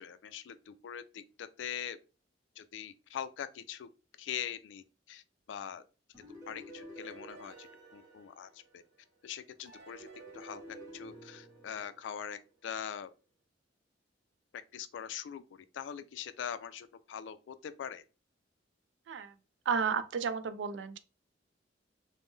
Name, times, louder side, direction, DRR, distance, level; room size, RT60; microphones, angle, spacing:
voice 1, 0.0-2.0 2.6-3.9 4.2-5.8 6.5-8.8 9.2-10.1 10.3-10.6 10.9-13.1 14.7-18.0, left 8 dB, 80° left, 0.3 m, -42 dB
sound 1, 6.1-9.0 9.7-12.5, right 1 dB, 15° right, 1.1 m, -51 dB
voice 2, 19.7-21.0, right 6 dB, 75° right, 0.3 m, -32 dB
2.6 x 2.1 x 3.5 m
head